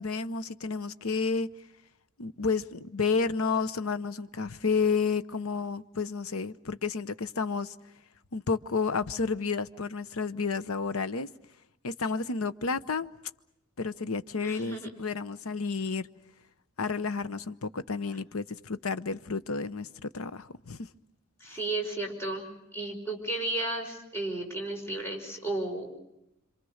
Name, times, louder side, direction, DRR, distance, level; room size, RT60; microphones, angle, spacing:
voice 1, 0.0-1.5 2.2-7.8 8.3-11.3 11.8-13.1 13.8-16.1 16.8-20.9, left 4 dB, 85° left, 14 dB, 0.9 m, -31 dB
voice 2, 14.4-14.9 21.4-26.0, right 2 dB, 10° left, 1 dB, 5.1 m, -34 dB
27.0 x 26.5 x 6.5 m, 0.85 s
head